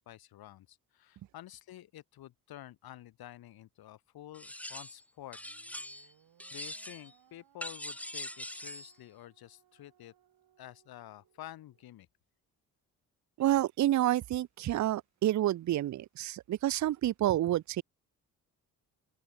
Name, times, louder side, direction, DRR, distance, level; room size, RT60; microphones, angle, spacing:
voice 1, 0.0-5.4 5.8-6.1 6.5-10.1 10.6-12.1, left 13 dB, 80° left, 1.6 m, -50 dB
sound 1, 4.3-5.0 5.3-6.1 6.4-7.1 7.6-8.9, left 1 dB, 5° left, 0.6 m, -42 dB
sound 2, 5.3-11.9, right 11 dB, 80° right, 7.2 m, -68 dB
voice 2, 13.4-17.8, right 13 dB, 55° right, 0.5 m, -29 dB
open air
cardioid pair, 65°, 36 cm